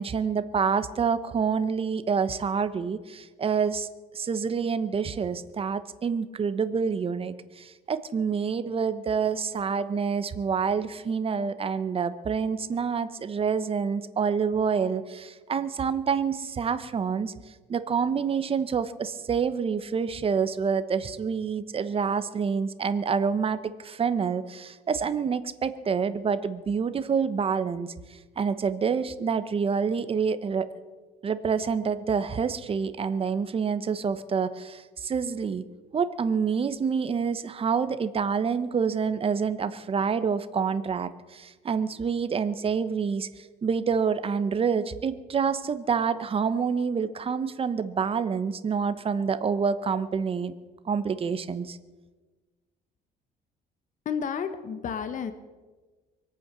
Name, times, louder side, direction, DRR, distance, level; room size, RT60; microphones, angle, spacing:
voice 1, 0.0-3.9 4.1-17.3 17.7-27.9 28.4-30.7 31.2-35.7 35.9-50.5 50.8-51.8, right 6 dB, 35° right, 13 dB, 1.1 m, -27 dB
voice 2, 54.0-55.3, left 7 dB, 50° left, 10 dB, 1.4 m, -31 dB
24.0 x 8.8 x 6.9 m, 1.3 s
cardioid pair, 110°, 17 cm